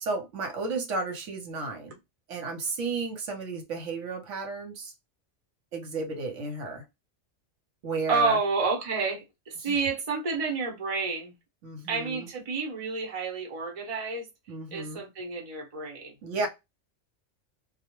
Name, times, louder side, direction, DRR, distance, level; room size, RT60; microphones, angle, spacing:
voice 1, 0.0-2.0 2.3-4.9 5.7-6.8 7.8-8.4 9.6-9.8 11.6-12.3 14.5-15.0 16.2-16.5, right 3 dB, 75° right, 1.0 m, -33 dB
voice 2, 8.1-11.3 11.9-14.3 14.7-16.1, right 4 dB, 30° right, 0.8 m, -29 dB
2.3 x 2.0 x 2.8 m
omnidirectional pair, 1.3 m